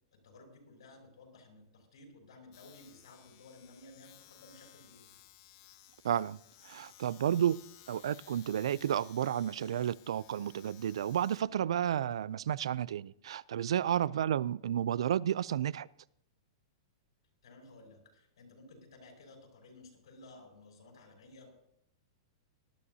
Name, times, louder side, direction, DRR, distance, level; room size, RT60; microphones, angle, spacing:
voice 1, 0.1-5.1 14.2-14.4 17.4-21.5, left 2 dB, 80° left, 5.9 m, -55 dB
Domestic sounds home sounds, 2.5-12.9, left 13 dB, 35° left, 0.8 m, -59 dB
voice 2, 6.0-6.4 6.6-7.6 7.9-15.9, right 10 dB, 80° right, 0.4 m, -31 dB
19.0 x 13.0 x 2.8 m
supercardioid pair, 175°, 3 cm